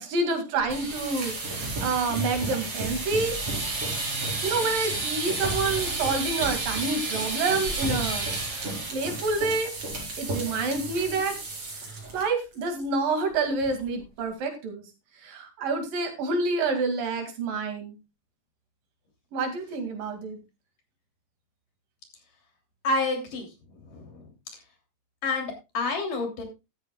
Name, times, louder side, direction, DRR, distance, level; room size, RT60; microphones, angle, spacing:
voice 1, 0.0-3.4 4.4-8.6 8.9-9.7 10.2-11.4 11.8-14.8 15.2-18.0 19.3-20.4, right 3 dB, 75° right, 6 dB, 4.0 m, -28 dB
sound 1, 0.6-12.2 12.5-12.8 13.1-13.2 13.6-14.0, right 2 dB, 40° right, 5.4 m, -31 dB
voice 2, 22.8-23.5 23.9-24.3 25.2-26.4, left 3 dB, 70° left, 4 dB, 4.7 m, -28 dB
14.0 x 13.0 x 2.3 m, 0.26 s
omnidirectional pair, 4.0 m